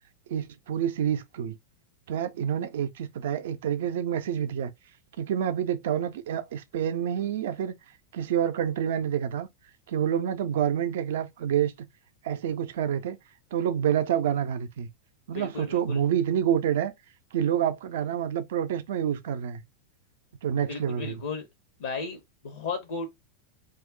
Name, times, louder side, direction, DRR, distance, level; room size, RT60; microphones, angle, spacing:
voice 1, 0.3-1.5 2.1-4.7 5.2-7.7 8.1-9.5 9.9-11.7 12.2-13.2 13.5-14.9 15.3-16.9 17.3-19.6 20.4-21.2, right 9 dB, 55° right, 0.4 m, -28 dB
voice 2, 15.3-16.0 20.7-21.5 21.8-23.1, left 4 dB, 60° left, 0.6 m, -35 dB
2.5 x 2.0 x 3.7 m
figure-of-eight pair, 90°, 0 cm